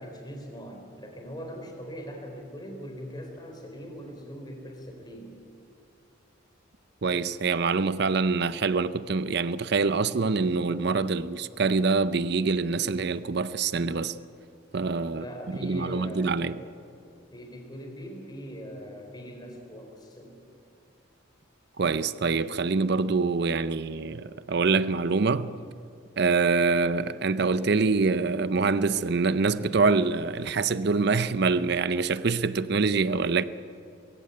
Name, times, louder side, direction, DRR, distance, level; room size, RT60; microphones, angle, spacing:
voice 1, 0.0-5.3 15.1-16.6 17.3-20.4, equal, 20° left, 4.1 m, -41 dB
voice 2, 7.0-14.1 14.7-16.6 21.8-25.5 26.2-33.4, right 4 dB, 55° right, 0.6 m, -25 dB
21.5 x 16.0 x 9.4 m
head